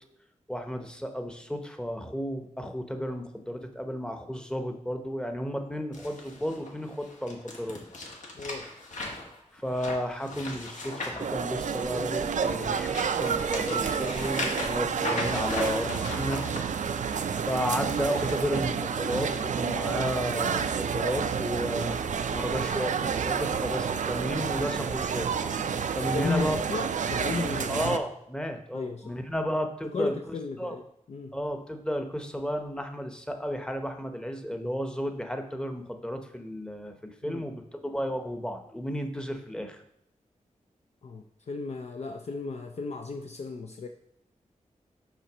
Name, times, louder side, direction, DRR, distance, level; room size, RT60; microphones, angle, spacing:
voice 1, 0.5-7.8 9.5-16.4 17.3-22.0 22.3-25.3 25.9-26.6 27.7-30.1 30.6-30.8 31.3-39.8, equal, 5° left, 5 dB, 0.8 m, -33 dB
sound 1, 5.9-12.1 12.5-16.6 17.8-19.3 19.7-19.9 20.6-20.7, left 2 dB, 75° left, 1.6 m, -38 dB
voice 2, 8.3-8.7 26.1-27.7 28.7-29.2 29.9-31.3 37.2-37.4 41.0-43.9, left 4 dB, 55° left, 4 dB, 0.5 m, -34 dB
sound 2, 11.2-28.0, right 6 dB, 70° right, 0.4 m, -29 dB
5.8 x 4.3 x 6.0 m, 0.76 s
wide cardioid pair, 90°, 13 cm